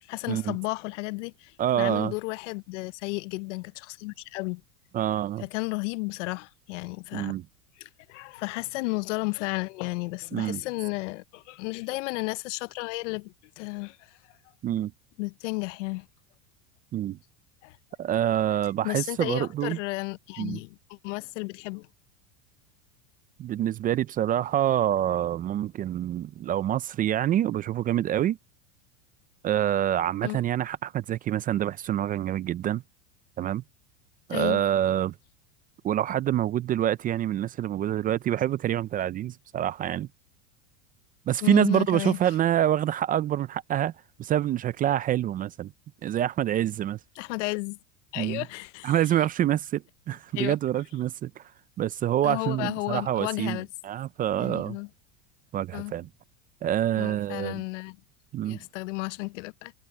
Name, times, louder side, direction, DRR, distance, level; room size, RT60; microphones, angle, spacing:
voice 1, 0.1-4.6 5.4-7.4 7.8-14.2 15.2-16.1 17.6-17.8 18.8-21.9 30.2-30.4 34.3-34.6 41.4-42.2 47.2-47.8 48.1-49.0 50.3-50.6 52.2-53.7 54.4-54.9 55.7-55.9 57.0-58.0 58.5-59.7, left 25 dB, 70° left, 0.7 m, -33 dB
voice 2, 1.6-2.1 4.9-5.4 7.1-7.4 10.3-10.6 14.6-14.9 16.9-17.2 18.0-19.8 20.4-20.6 23.4-28.4 29.4-32.8 33.4-33.6 34.3-35.1 35.8-40.1 41.3-43.9 44.2-45.7 46.0-47.0 48.2-48.4 48.8-51.4 51.8-54.8 55.5-56.1 56.6-57.6 58.3-58.6, right 11 dB, 25° right, 0.4 m, -26 dB
supercardioid pair, 125°, 37 cm